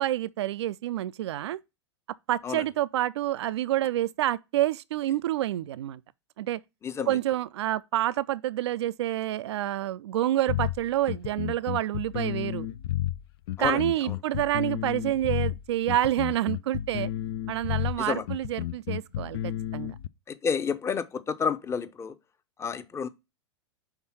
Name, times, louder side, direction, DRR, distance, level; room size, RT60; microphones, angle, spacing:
voice 1, 0.0-1.6 2.3-6.0 6.4-6.6 7.1-12.7 13.6-17.1 17.5-19.9, right 13 dB, 65° right, 0.4 m, -28 dB
voice 2, 6.8-7.2 13.6-14.2 18.0-18.2 20.3-22.1 22.6-23.1, left 6 dB, 20° left, 0.6 m, -30 dB
sound 1, 10.5-20.1, left 12 dB, 60° left, 0.4 m, -31 dB
5.8 x 3.8 x 5.6 m
figure-of-eight pair, 95°, 15 cm